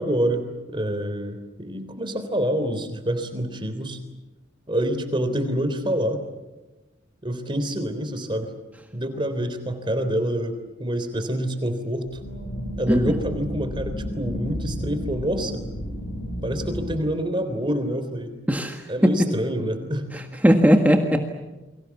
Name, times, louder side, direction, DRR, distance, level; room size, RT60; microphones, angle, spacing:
voice 1, 0.0-4.0 4.7-6.2 7.2-8.5 8.9-12.2 12.8-15.6 16.4-18.3 18.9-20.2, right 1 dB, 25° right, 8 dB, 3.5 m, -27 dB
sound 1, 12.1-16.9, equal, 80° left, 5.8 m, -32 dB
voice 2, 18.5-19.1 20.1-21.3, equal, 10° right, 4 dB, 1.6 m, -19 dB
29.5 x 24.0 x 7.3 m, 1.1 s
head